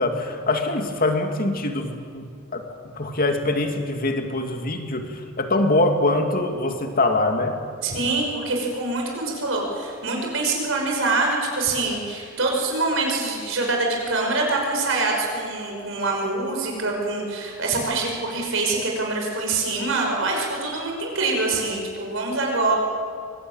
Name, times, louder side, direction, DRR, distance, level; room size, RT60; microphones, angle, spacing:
voice 1, 0.0-7.6, left 2 dB, 45° left, 5 dB, 2.5 m, -24 dB
voice 2, 7.8-22.8, right 3 dB, 70° right, 0 dB, 5.7 m, -25 dB
24.0 x 20.5 x 9.1 m, 2.4 s
head